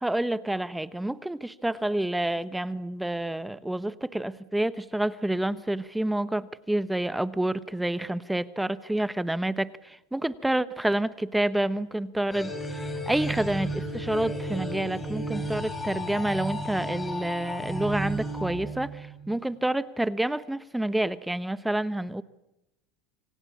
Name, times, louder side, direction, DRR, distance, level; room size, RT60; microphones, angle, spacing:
voice 1, 0.0-22.2, right 1 dB, 5° right, 14 dB, 0.9 m, -28 dB
sound 1, 12.3-19.3, right 1 dB, 15° left, 7.8 m, -33 dB
26.5 x 25.5 x 8.5 m, 0.90 s
supercardioid pair, 105°, 0 cm